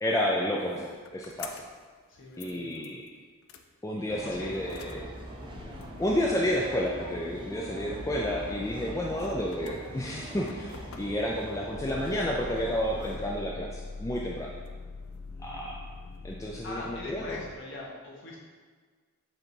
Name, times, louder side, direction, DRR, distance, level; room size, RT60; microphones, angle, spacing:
voice 1, 0.0-1.6 2.4-3.0 3.8-5.1 6.0-10.7 11.0-14.6 15.4-15.8 16.2-17.4, equal, 15° left, -2 dB, 0.4 m, -31 dB
sound 1, 0.6-1.9 2.1-3.1 3.5-3.6 4.6-17.5, left 3 dB, 75° left, 0.5 m, -44 dB
voice 2, 2.1-2.9 4.1-4.5 8.7-9.0 15.3-15.7 16.5-18.4, left 2 dB, 60° left, -4 dB, 1.4 m, -42 dB
sound 2, 4.1-13.2, right 1 dB, 25° right, 0.8 m, -43 dB
7.8 x 2.8 x 4.4 m, 1.5 s
head